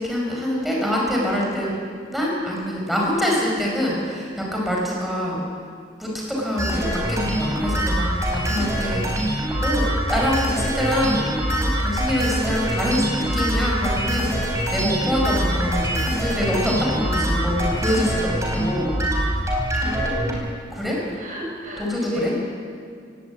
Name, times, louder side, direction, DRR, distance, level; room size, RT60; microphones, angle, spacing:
voice 1, 0.0-1.7 2.1-5.4 6.0-11.3 11.6-19.0 20.7-21.0 21.8-22.3, equal, ahead, -3 dB, 5.2 m, -25 dB
sound 1, 6.6-20.3, right 1 dB, 20° right, 4.3 m, -24 dB
voice 2, 19.8-20.4 21.2-22.4, equal, 45° right, -1 dB, 4.8 m, -31 dB
19.0 x 18.0 x 8.3 m, 2.2 s
head